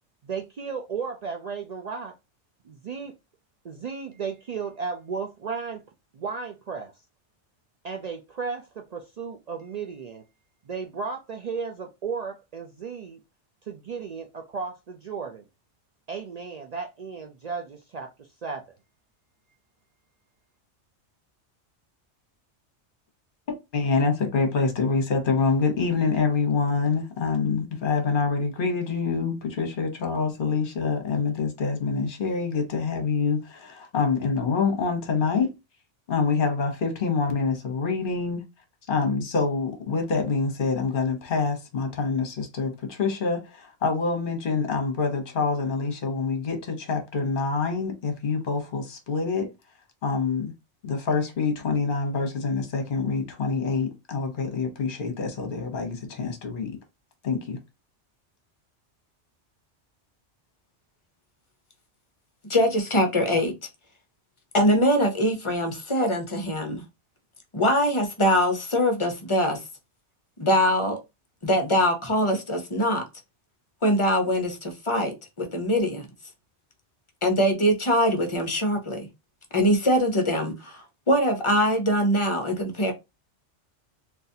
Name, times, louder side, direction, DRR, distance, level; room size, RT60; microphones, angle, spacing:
voice 1, 0.2-2.1 2.6-3.1 3.6-5.8 6.1-6.9 7.8-10.2 10.6-13.2 13.6-15.4 16.1-18.6, right 5 dB, 65° right, 0.4 m, -34 dB
voice 2, 23.7-35.5 36.1-38.4 38.9-49.5 50.0-50.5 50.8-56.8 57.2-57.6, left 4 dB, 50° left, 1.1 m, -26 dB
voice 3, 62.5-63.5 64.5-66.8 67.5-69.6 70.4-71.0 71.4-73.0 73.8-76.1 77.2-79.1 79.5-82.9, equal, 30° left, 0.7 m, -23 dB
3.9 x 2.5 x 2.7 m
omnidirectional pair, 1.2 m